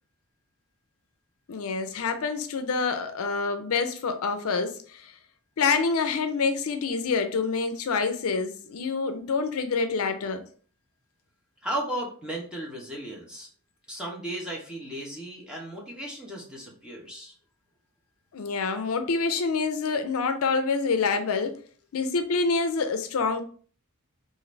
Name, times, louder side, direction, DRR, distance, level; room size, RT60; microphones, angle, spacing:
voice 1, 1.5-5.1 5.6-10.4 18.3-21.6 21.9-23.4, left 4 dB, 70° left, 0.5 m, -27 dB
voice 2, 11.6-13.5 13.9-17.3, right 1 dB, 5° right, 0.9 m, -35 dB
3.8 x 2.5 x 3.1 m
head